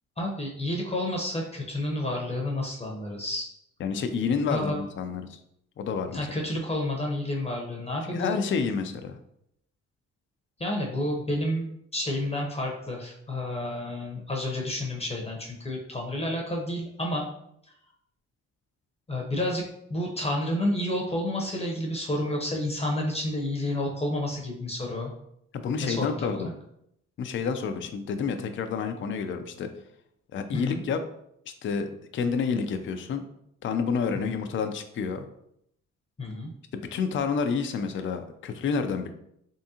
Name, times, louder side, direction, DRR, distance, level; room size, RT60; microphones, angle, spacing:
voice 1, 0.2-3.5 4.5-4.9 6.1-8.4 10.6-17.2 19.1-19.6 19.9-25.1 25.8-26.4 30.5-30.8 34.1-34.2 36.2-36.5, left 1 dB, 20° left, -1 dB, 0.8 m, -30 dB
voice 2, 3.8-5.4 5.8-6.3 8.1-9.2 25.5-26.5 27.2-29.7 30.3-31.0 31.6-33.2 33.6-35.2 36.7-39.1, left 5 dB, 40° left, 7 dB, 0.4 m, -29 dB
3.6 x 3.4 x 2.8 m, 0.74 s
cardioid pair, 90°, 30 cm